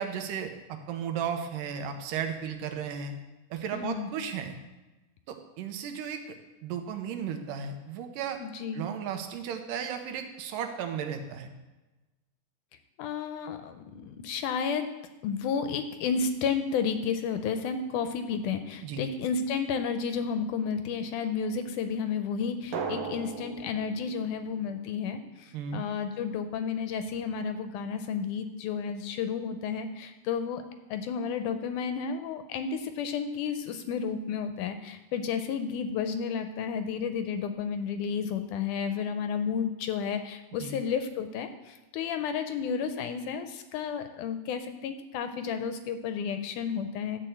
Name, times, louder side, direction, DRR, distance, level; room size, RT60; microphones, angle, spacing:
voice 1, 0.0-3.1 3.5-4.5 5.3-6.2 6.6-8.4 8.7-11.5 18.8-19.0 25.5-25.9 40.6-40.7, right 7 dB, 80° right, 6 dB, 2.4 m, -34 dB
voice 2, 3.7-4.1 8.4-8.8 13.0-14.9 15.2-30.6 30.9-47.2, left 6 dB, 75° left, 8 dB, 2.0 m, -32 dB
Drum, 22.7-25.4, right 5 dB, 60° right, 2.1 m, -38 dB
12.5 x 4.5 x 7.9 m, 1.1 s
omnidirectional pair, 3.9 m